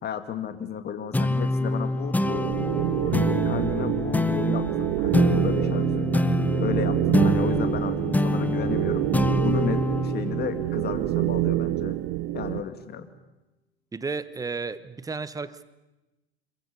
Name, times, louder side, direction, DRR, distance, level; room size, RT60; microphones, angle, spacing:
voice 1, 0.0-6.3 6.6-12.0 12.3-13.1, left 8 dB, 30° left, 9 dB, 2.3 m, -33 dB
sound 1, 1.1-12.0, left 2 dB, 5° left, 0.8 m, -26 dB
sound 2, 2.2-12.6, right 18 dB, 50° right, 0.8 m, -27 dB
voice 2, 13.9-15.6, right 4 dB, 10° right, 15 dB, 1.1 m, -33 dB
26.5 x 23.0 x 7.0 m, 1.0 s
hypercardioid pair, 105°, 32 cm